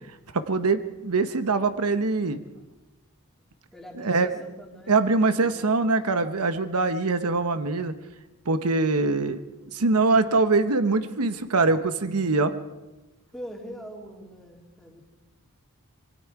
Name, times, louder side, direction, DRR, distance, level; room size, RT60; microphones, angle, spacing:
voice 1, 0.3-2.4 4.0-4.3 4.9-7.9 8.5-9.4 9.7-12.5, right 3 dB, 90° right, 10 dB, 1.0 m, -23 dB
voice 2, 3.7-5.9 13.3-15.1, equal, ahead, -1 dB, 3.2 m, -43 dB
25.5 x 22.5 x 4.8 m, 1.1 s
head